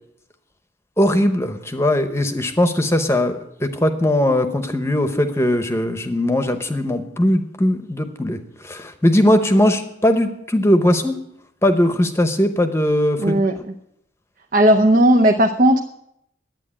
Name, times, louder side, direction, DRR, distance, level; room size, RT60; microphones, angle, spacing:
voice 1, 1.0-8.4 8.6-11.1 11.6-13.4, left 1 dB, 15° left, 8 dB, 0.9 m, -19 dB
voice 2, 13.2-13.5 14.5-15.8, right 1 dB, 45° right, 4 dB, 0.7 m, -15 dB
11.5 x 9.0 x 8.8 m, 0.77 s
head